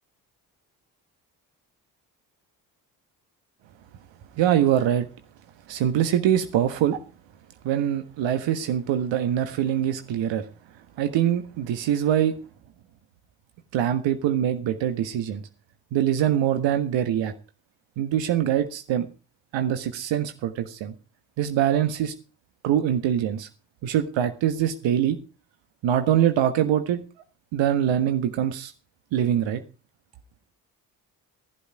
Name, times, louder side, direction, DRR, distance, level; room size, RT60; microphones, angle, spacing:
voice 1, 4.3-5.1 5.7-7.0 7.6-10.5 11.0-12.3 13.7-15.4 15.9-17.3 18.0-19.1 19.5-20.9 21.4-22.1 22.6-23.5 23.8-25.2 25.8-27.0 27.5-28.7 29.1-29.6, right 10 dB, 65° right, 8 dB, 1.4 m, -23 dB
16.0 x 11.5 x 4.8 m, 0.34 s
figure-of-eight pair, 40°, 49 cm